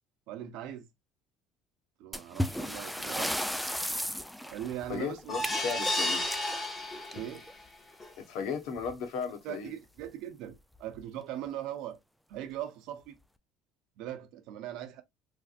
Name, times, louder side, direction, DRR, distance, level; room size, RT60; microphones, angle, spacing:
voice 1, 0.3-0.8 2.0-3.4 4.5-5.2 7.1-7.5 9.4-12.0 12.3-13.2 14.0-15.0, right 11 dB, 70° right, 0.7 m, -40 dB
sound 1, 2.1-7.5 8.8-8.9 9.2-9.3 10.0-10.1 10.8-11.0, equal, ahead, 0.3 m, -35 dB
voice 2, 4.9-6.2 8.2-9.7, left 6 dB, 75° left, 1.0 m, -35 dB
sound 2, 5.3-7.5 8.0-8.1 8.5-8.6, left 1 dB, 20° left, 0.9 m, -32 dB
3.3 x 2.5 x 2.4 m
cardioid pair, 135°, 0 cm